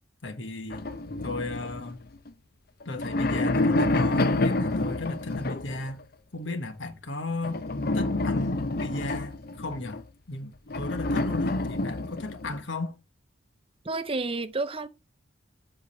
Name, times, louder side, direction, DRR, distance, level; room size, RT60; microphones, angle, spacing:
voice 1, 0.2-0.8 1.2-2.0 2.8-6.0 6.3-7.6 7.9-10.0 10.3-13.0, left 2 dB, 70° left, 1.3 m, -34 dB
sound 1, 0.7-2.3 2.8-5.9 7.4-10.0 10.7-12.6, left 2 dB, 50° left, 0.7 m, -28 dB
voice 2, 13.9-14.9, right 3 dB, 30° right, 0.6 m, -30 dB
8.0 x 4.9 x 7.0 m
head